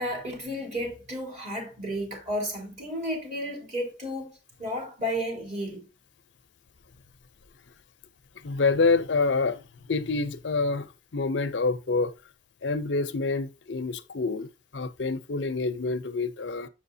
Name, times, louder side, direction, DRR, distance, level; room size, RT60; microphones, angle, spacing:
voice 1, 0.0-5.8, equal, 40° right, 3.6 m, -32 dB
voice 2, 8.4-9.6 9.9-12.1 12.6-16.7, left 3 dB, 75° left, 0.6 m, -27 dB
7.4 x 6.9 x 2.7 m
head